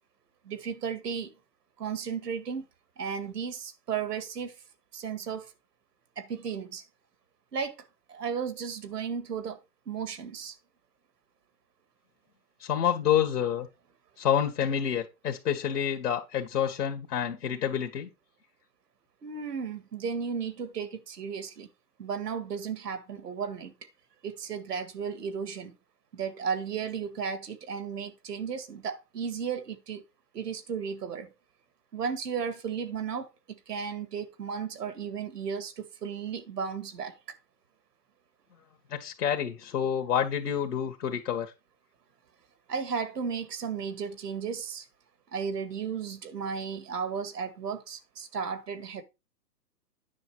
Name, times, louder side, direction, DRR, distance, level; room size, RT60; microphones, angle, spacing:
voice 1, 0.5-1.3 1.8-2.7 3.0-4.5 4.9-5.5 6.2-6.8 7.5-7.8 8.1-9.6 9.9-10.5 19.2-21.7 22.0-23.7 24.2-25.8 26.1-30.0 30.3-31.3 31.9-37.1 42.7-44.9 45.3-49.0, right 6 dB, 70° right, 1.9 m, -34 dB
voice 2, 12.6-13.7 14.2-18.1 38.9-41.5, left 9 dB, 70° left, 2.0 m, -28 dB
9.7 x 6.0 x 4.7 m
hypercardioid pair, 135°, 49 cm